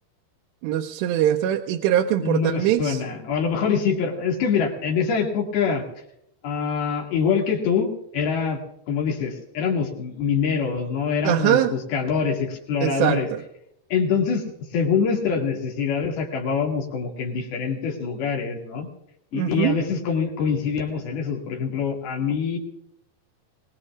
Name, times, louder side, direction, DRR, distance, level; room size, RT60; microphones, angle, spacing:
voice 1, 0.6-3.0 11.2-11.8 12.8-13.4 19.3-19.7, right 11 dB, 80° right, 3 dB, 2.7 m, -22 dB
voice 2, 2.2-5.8 6.4-8.6 8.9-13.3 13.9-14.5 14.7-18.9 19.3-22.6, left 6 dB, 65° left, 0 dB, 3.9 m, -24 dB
24.0 x 20.0 x 2.4 m, 0.78 s
omnidirectional pair, 5.1 m